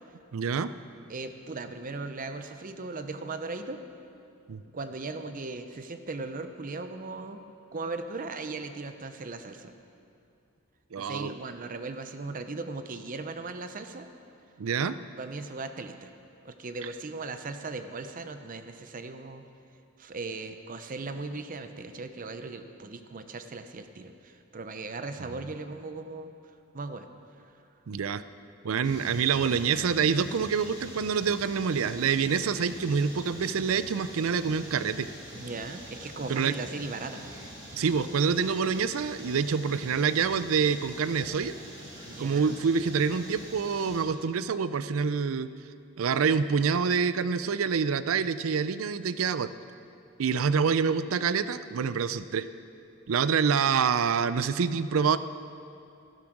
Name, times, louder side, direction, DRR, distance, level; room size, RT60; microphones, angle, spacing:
voice 1, 0.3-0.7 4.5-4.6 10.9-11.3 14.6-15.0 27.9-28.2 28.6-35.1 36.3-36.5 37.7-41.6 42.2-45.5 46.0-49.5 50.2-52.5 53.1-55.2, right 6 dB, 85° right, 14 dB, 0.5 m, -26 dB
voice 2, 1.1-3.8 4.7-7.4 7.7-9.7 11.0-14.1 15.2-16.1 16.4-19.5 20.0-26.3 26.7-27.1 27.4-27.5 35.3-37.4 42.1-42.6, right 3 dB, 40° right, 8 dB, 0.6 m, -38 dB
sound 1, 28.8-44.0, equal, 20° right, 3.2 m, -44 dB
12.0 x 11.5 x 6.0 m, 2.6 s
head